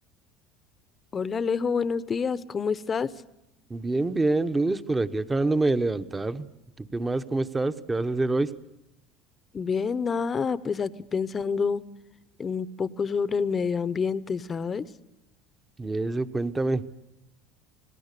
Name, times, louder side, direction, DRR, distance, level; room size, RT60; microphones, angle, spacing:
voice 1, 1.1-3.1 9.5-11.8 12.4-14.9, left 5 dB, 30° left, 15 dB, 0.9 m, -27 dB
voice 2, 3.7-6.5 6.8-8.5 15.8-16.8, right 2 dB, 15° right, 11 dB, 1.0 m, -26 dB
28.0 x 18.5 x 6.8 m, 0.89 s
supercardioid pair, 105°, 0 cm